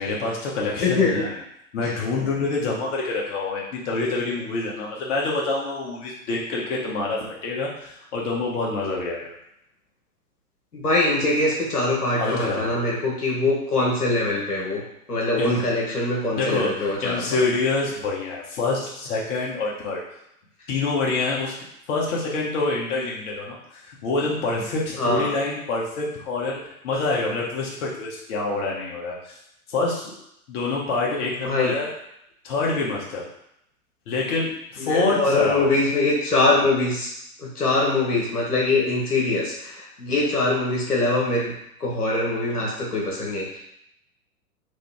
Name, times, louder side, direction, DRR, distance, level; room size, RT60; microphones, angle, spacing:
voice 1, 0.0-1.3 1.7-9.4 12.2-12.8 15.4-15.6 16.3-20.0 20.7-21.5 21.9-26.6 26.8-29.4 29.7-30.2 30.5-31.9 32.4-33.3 34.1-35.7, left 3 dB, 50° left, -3 dB, 1.3 m, -26 dB
voice 2, 0.8-1.3 1.8-1.9 10.7-14.8 15.1-17.4 25.0-25.4 31.4-31.8 34.8-37.1 37.4-41.5 41.8-43.6, left 2 dB, 85° left, -3 dB, 1.3 m, -23 dB
3.9 x 3.2 x 3.4 m, 0.77 s
figure-of-eight pair, 100°, 44 cm